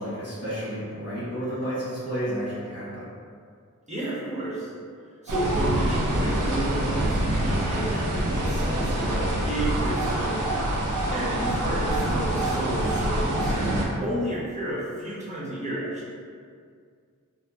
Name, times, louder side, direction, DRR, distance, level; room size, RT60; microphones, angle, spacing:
voice 1, 0.0-3.0, equal, 50° left, -11 dB, 0.8 m, -31 dB
voice 2, 3.9-4.7 5.2-13.5 14.0-16.1, right 1 dB, 20° right, -9 dB, 0.8 m, -31 dB
sound 1, 5.3-13.9, right 1 dB, 70° right, 0.5 m, -25 dB
2.7 x 2.2 x 2.2 m, 2.1 s
wide cardioid pair, 75°, 33 cm